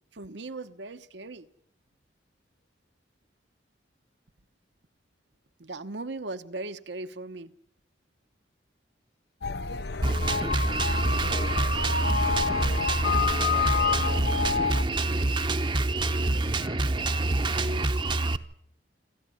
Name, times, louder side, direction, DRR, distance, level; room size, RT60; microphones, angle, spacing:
voice 1, 0.1-1.5 5.6-7.5, right 2 dB, 70° right, 10 dB, 1.1 m, -38 dB
sound 1, 9.4-14.8, left 5 dB, 60° left, 0.8 m, -28 dB
voice 2, 9.6-13.6 15.5-17.9, left 3 dB, 85° left, 7 dB, 6.0 m, -52 dB
Drum kit, 10.0-18.4, right 2 dB, 25° right, 0.8 m, -26 dB
27.0 x 13.5 x 10.0 m, 0.73 s
head